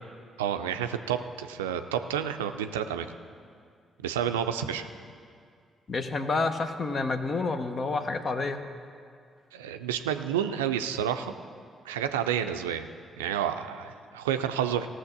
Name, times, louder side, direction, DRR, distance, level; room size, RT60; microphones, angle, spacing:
voice 1, 0.4-3.1 4.0-4.9 9.5-11.3 11.8-12.9 13.2-14.9, right 9 dB, 85° right, 8 dB, 0.4 m, -30 dB
voice 2, 5.9-8.7, left 3 dB, 45° left, 8 dB, 0.9 m, -29 dB
16.0 x 6.3 x 6.7 m, 2.2 s
hypercardioid pair, 40°, 0 cm